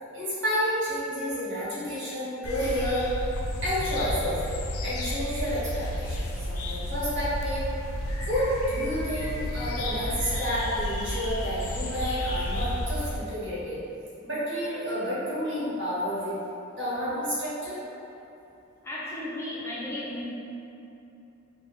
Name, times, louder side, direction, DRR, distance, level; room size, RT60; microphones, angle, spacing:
voice 1, 0.1-3.1 3.6-4.4 4.8-7.6 8.2-13.8 14.2-16.3 16.8-17.8, equal, 60° right, -10 dB, 1.2 m, -30 dB
sound 1, 2.4-13.2, left 1 dB, 80° left, 0.4 m, -32 dB
voice 2, 18.8-20.3, left 1 dB, 10° left, -8 dB, 0.4 m, -34 dB
3.3 x 2.2 x 3.7 m, 2.9 s
head